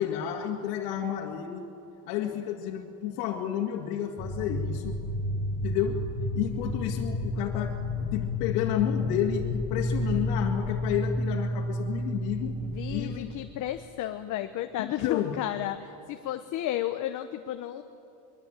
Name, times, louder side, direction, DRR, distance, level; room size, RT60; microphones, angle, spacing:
voice 1, 0.0-1.7 2.1-5.0 5.6-6.0 6.3-12.6 12.9-13.3 14.8-15.3, left 10 dB, 90° left, -3 dB, 2.4 m, -31 dB
sound 1, 4.2-13.6, left 1 dB, 10° left, 4.5 m, -31 dB
voice 2, 12.6-17.8, left 12 dB, 40° left, 7 dB, 1.0 m, -33 dB
24.5 x 22.5 x 9.0 m, 2.6 s
cardioid pair, 155°, 45 cm